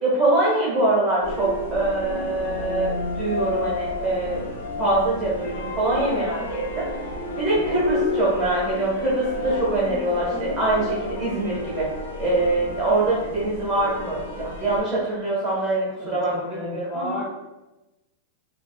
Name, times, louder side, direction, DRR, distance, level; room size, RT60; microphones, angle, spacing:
voice 1, 0.0-4.4 4.8-7.0 7.4-11.9 12.2-17.2, right 2 dB, 20° right, -7 dB, 1.1 m, -24 dB
sound 1, 1.2-14.8, left 2 dB, 85° left, 0.8 m, -31 dB
voice 2, 16.0-17.3, equal, 15° left, 0 dB, 0.6 m, -33 dB
5.5 x 2.1 x 2.2 m, 0.99 s
supercardioid pair, 145°, 0 cm